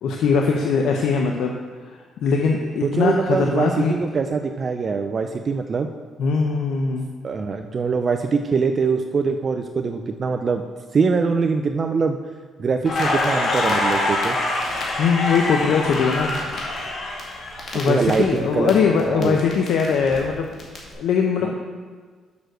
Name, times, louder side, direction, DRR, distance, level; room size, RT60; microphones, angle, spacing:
voice 1, 0.0-1.5 2.2-3.9 6.2-7.1 15.0-16.4 17.7-20.5 21.0-21.5, left 5 dB, 80° left, 2 dB, 0.7 m, -21 dB
voice 2, 2.8-5.9 7.2-10.6 10.9-12.2 12.6-14.4 17.9-19.4 21.4-21.5, right 5 dB, 45° right, 6 dB, 0.5 m, -23 dB
Crackle, 12.8-18.7 19.0-20.8, left 2 dB, 55° left, 2.3 m, -25 dB
6.9 x 6.3 x 6.4 m, 1.5 s
cardioid pair, 90°, 0 cm